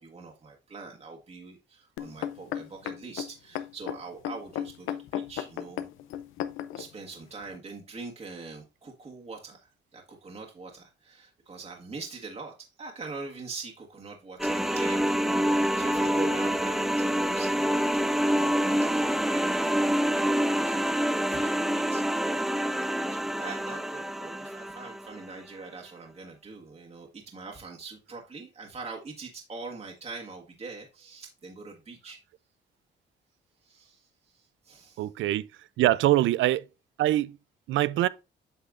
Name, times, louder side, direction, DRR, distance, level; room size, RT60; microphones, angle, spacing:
voice 1, 0.0-5.9 6.8-22.4 23.1-32.2 33.6-35.1, right 4 dB, 30° right, 1.5 m, -43 dB
sound 1, 2.0-6.9 7.5-7.6, left 10 dB, 85° left, 0.6 m, -34 dB
sound 2, 14.4-25.2, equal, ahead, 0.4 m, -26 dB
voice 2, 35.0-35.5 35.8-36.6 37.0-37.4 37.7-38.1, right 15 dB, 75° right, 0.4 m, -23 dB
8.2 x 5.6 x 2.5 m
cardioid pair, 90°, 20 cm